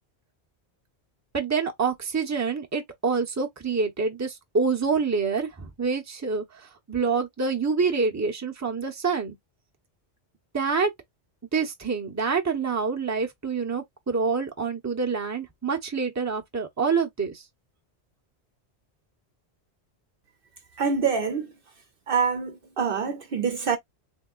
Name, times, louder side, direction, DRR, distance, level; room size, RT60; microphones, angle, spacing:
voice 1, 1.3-9.3 10.5-10.9 11.5-17.4, right 5 dB, 15° right, 0.8 m, -27 dB
voice 2, 20.8-21.5 22.1-23.8, right 6 dB, 60° right, 0.8 m, -25 dB
3.7 x 3.5 x 2.4 m
omnidirectional pair, 1.1 m